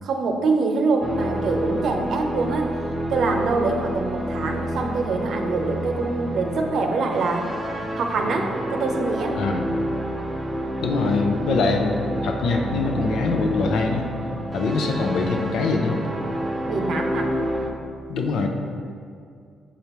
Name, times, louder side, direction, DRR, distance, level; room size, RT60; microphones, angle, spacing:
voice 1, 0.0-2.7 3.1-7.5 8.0-9.4 16.7-17.3, right 3 dB, 65° right, 3 dB, 0.7 m, -24 dB
sound 1, 1.0-17.7, right 1 dB, 25° right, 0.7 m, -29 dB
voice 2, 9.3-9.7 10.8-14.1 14.5-16.0 18.1-18.5, left 3 dB, 75° left, 3 dB, 0.7 m, -23 dB
7.0 x 5.1 x 3.0 m, 2.3 s
cardioid pair, 90°, 0 cm